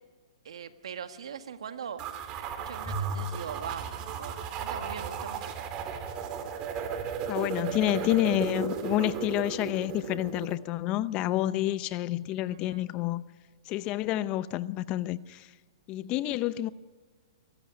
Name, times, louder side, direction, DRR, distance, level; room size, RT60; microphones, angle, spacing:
voice 1, 0.4-2.0 2.4-5.5 7.3-7.7 12.4-12.8, right 7 dB, 75° right, 1.8 m, -42 dB
sound 1, 2.0-10.6, right 7 dB, 30° right, 2.4 m, -35 dB
Bowed string instrument, 2.9-5.3, right 1 dB, ahead, 5.4 m, -39 dB
voice 2, 7.3-13.2 13.7-15.5 15.9-16.7, left 14 dB, 30° left, 0.6 m, -29 dB
24.0 x 14.0 x 9.6 m
hypercardioid pair, 135°, 3 cm